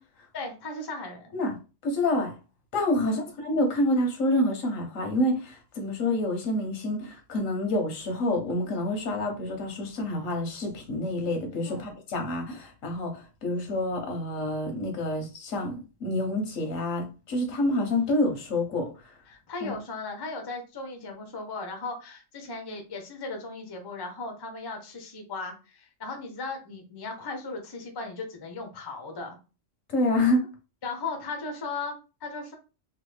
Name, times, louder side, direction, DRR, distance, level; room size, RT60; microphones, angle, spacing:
voice 1, 0.3-1.3 3.0-3.2 11.7-11.9 19.3-29.4 30.8-32.6, left 3 dB, 30° left, 0.5 m, -37 dB
voice 2, 1.8-2.3 2.7-18.9 19.6-19.7 29.9-30.4, left 1 dB, 85° left, 1.3 m, -27 dB
3.1 x 2.3 x 3.2 m
omnidirectional pair, 1.3 m